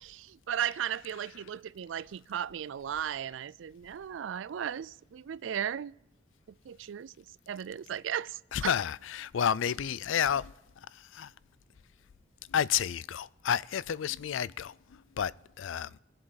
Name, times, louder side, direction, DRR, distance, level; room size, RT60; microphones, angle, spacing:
voice 1, 0.0-6.0 6.6-8.7, right 9 dB, 70° right, 0.4 m, -36 dB
voice 2, 8.5-11.3 12.5-16.0, left 8 dB, 80° left, 0.4 m, -31 dB
23.0 x 7.8 x 4.1 m
head